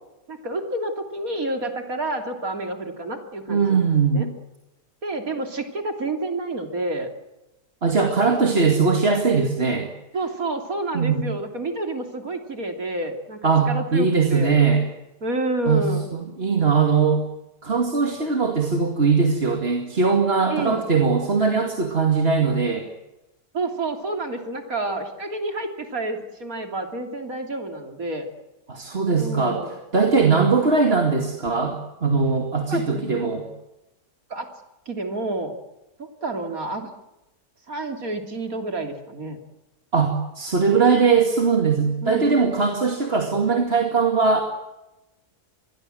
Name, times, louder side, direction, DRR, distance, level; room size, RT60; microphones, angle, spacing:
voice 1, 0.3-3.9 4.1-4.3 5.0-7.1 10.1-13.4 13.7-14.5 15.2-16.1 20.5-20.9 23.5-28.3 29.2-29.8 30.2-30.5 32.7-33.2 34.3-34.5 34.9-35.5 36.0-36.9 37.7-39.4 42.0-42.3, right 2 dB, 60° right, 5 dB, 3.5 m, -29 dB
voice 2, 3.5-4.3 7.8-9.9 10.9-11.3 13.4-14.8 15.7-17.2 17.6-22.9 28.7-33.5 39.9-44.4, right 5 dB, 40° right, 3 dB, 2.6 m, -20 dB
26.0 x 21.0 x 7.9 m, 0.97 s
omnidirectional pair, 1.7 m